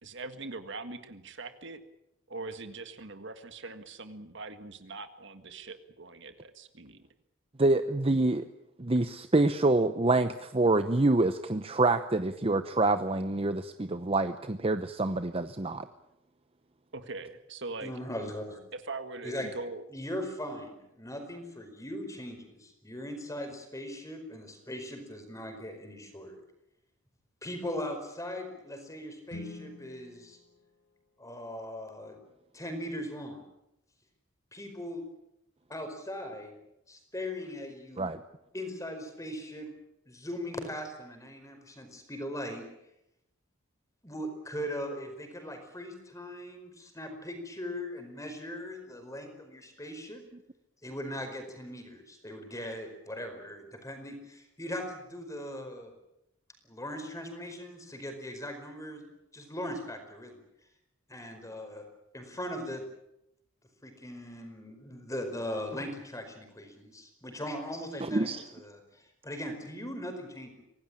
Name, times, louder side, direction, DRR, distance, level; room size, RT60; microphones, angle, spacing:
voice 1, 0.0-1.8 2.3-7.1 16.9-17.9 18.2-18.3 18.7-19.8, right 3 dB, 60° right, 9 dB, 1.8 m, -42 dB
voice 2, 7.6-8.4 8.8-15.9 38.0-38.2 68.0-68.4, right 2 dB, 30° right, 10 dB, 0.8 m, -26 dB
voice 3, 17.8-18.6 19.2-19.5 19.9-26.4 27.4-30.4 31.2-32.2 32.5-33.4 34.5-35.0 35.7-36.6 36.9-38.1 38.5-39.7 40.1-42.7 44.0-50.2 50.8-55.9 56.6-59.0 59.3-60.4 61.1-61.8 62.1-62.8 63.8-70.5, left 1 dB, 15° left, 6 dB, 4.9 m, -39 dB
Guitar, 29.3-31.9, left 3 dB, 55° left, 2.5 m, -49 dB
25.0 x 18.0 x 8.8 m, 0.84 s
head